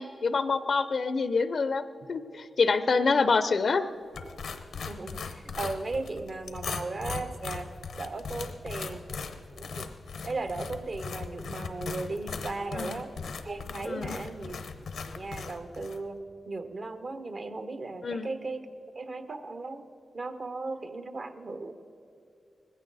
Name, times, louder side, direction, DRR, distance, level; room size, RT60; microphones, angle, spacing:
voice 1, 0.0-1.8 2.1-3.8 12.7-13.0 13.8-14.1 18.0-18.3, left 4 dB, 65° left, 12 dB, 0.5 m, -26 dB
voice 2, 2.8-3.2 4.9-7.7 8.0-9.2 9.5-9.9 10.2-13.1 13.4-14.6 15.1-16.2 16.4-18.7 18.9-19.8 20.1-21.7, right 3 dB, 55° right, 9 dB, 1.0 m, -36 dB
sound 1, 4.1-16.0, left 5 dB, 90° left, 0.8 m, -39 dB
19.5 x 15.5 x 4.1 m, 2.7 s
cardioid pair, 60°, 0 cm